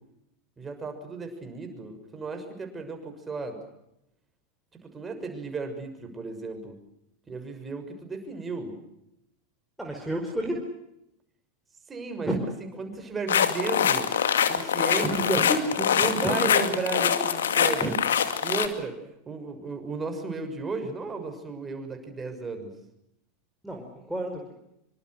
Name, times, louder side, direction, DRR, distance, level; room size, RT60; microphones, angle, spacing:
voice 1, 0.6-3.6 4.8-6.8 7.3-8.8 11.9-12.3 12.8-14.1 14.5-15.4 15.9-18.0 18.4-19.0 19.3-22.7, right 4 dB, 20° right, 6 dB, 6.6 m, -34 dB
voice 2, 9.8-10.6 12.2-12.4 15.0-16.8 17.8-17.9 23.6-24.5, right 1 dB, 5° right, 0 dB, 4.6 m, -30 dB
sound 1, 13.3-18.7, left 8 dB, 70° left, 2.3 m, -24 dB
26.5 x 25.0 x 6.5 m, 0.82 s
figure-of-eight pair, 85°, 0 cm